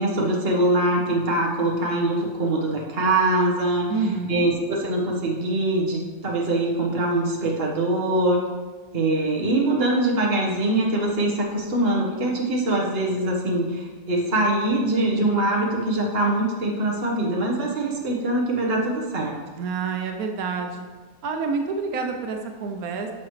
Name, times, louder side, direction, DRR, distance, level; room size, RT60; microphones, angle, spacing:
voice 1, 0.0-3.9 4.3-8.4 8.9-19.4, right 1 dB, 45° right, -1 dB, 1.5 m, -23 dB
voice 2, 3.9-4.5 19.6-20.9 21.2-23.1, right 4 dB, 90° right, 4 dB, 1.2 m, -28 dB
10.5 x 6.1 x 3.2 m, 1.3 s
omnidirectional pair, 1.5 m